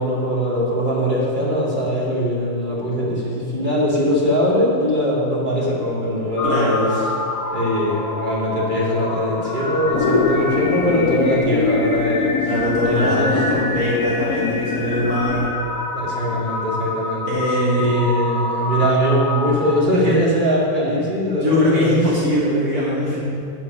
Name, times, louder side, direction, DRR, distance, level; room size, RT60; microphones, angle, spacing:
voice 1, 0.0-6.8 7.5-12.5 12.8-13.3 15.9-17.4 17.7-21.9, equal, 35° right, -5 dB, 2.6 m, -21 dB
sound 1, 6.4-19.8, left 2 dB, 45° left, 1.5 m, -27 dB
voice 2, 6.4-6.9 12.4-15.5 17.3-17.9 21.4-23.2, equal, 80° right, -8 dB, 3.6 m, -21 dB
sound 2, 9.9-15.5, left 5 dB, 90° left, 1.3 m, -23 dB
10.5 x 7.6 x 6.3 m, 2.7 s
omnidirectional pair, 1.5 m